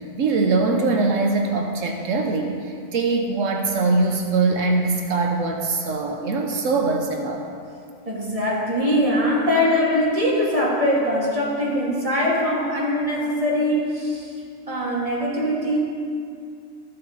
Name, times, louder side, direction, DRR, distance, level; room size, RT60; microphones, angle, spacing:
voice 1, 0.0-7.5, right 3 dB, 75° right, 3 dB, 1.2 m, -22 dB
voice 2, 8.1-14.3 14.7-15.8, left 1 dB, 25° right, -5 dB, 2.3 m, -22 dB
13.5 x 8.4 x 3.9 m, 2.4 s
omnidirectional pair, 1.4 m